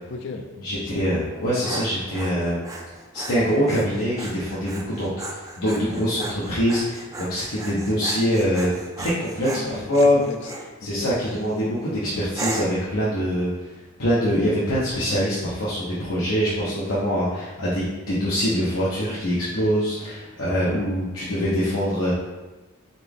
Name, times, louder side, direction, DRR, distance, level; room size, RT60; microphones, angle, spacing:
voice 1, 0.1-1.0 9.5-10.5 10.8-11.1, left 3 dB, 55° left, 5 dB, 0.4 m, -36 dB
voice 2, 0.6-2.6 3.1-8.7 9.0-10.2 10.8-13.5 14.0-22.1, equal, 85° left, -9 dB, 1.0 m, -24 dB
Dog, 1.2-10.7 11.2-11.6 12.3-12.9, right 2 dB, 15° right, 0.3 m, -36 dB
4.2 x 3.4 x 3.5 m, 1.1 s
head